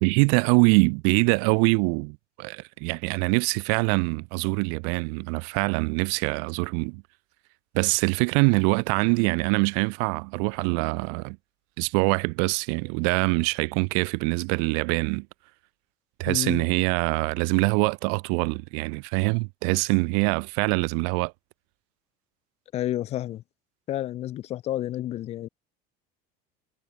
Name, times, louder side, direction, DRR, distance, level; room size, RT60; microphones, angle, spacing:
voice 1, 0.0-7.0 7.7-11.4 11.8-15.3 16.2-21.3, right 40 dB or more, 75° right, 0.6 m, -24 dB
voice 2, 16.3-16.6 22.7-23.4 23.9-25.5, left 13 dB, 35° left, 0.7 m, -30 dB
cardioid pair, 165°, 19 cm